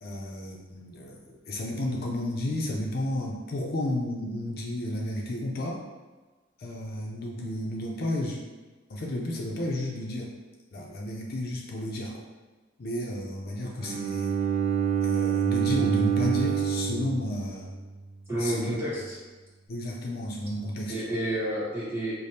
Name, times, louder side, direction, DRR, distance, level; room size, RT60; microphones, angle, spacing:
voice 1, 0.0-5.8 6.6-8.4 8.9-10.3 10.7-12.2 12.8-14.4 15.0-17.7 18.4-18.8 19.7-21.1, left 1 dB, 55° left, -1 dB, 0.5 m, -32 dB
Bowed string instrument, 13.8-17.9, right 8 dB, 35° right, 0.3 m, -27 dB
voice 2, 18.3-19.2 20.9-22.1, right 1 dB, 15° right, -9 dB, 1.2 m, -30 dB
4.9 x 2.0 x 2.7 m, 1.3 s
head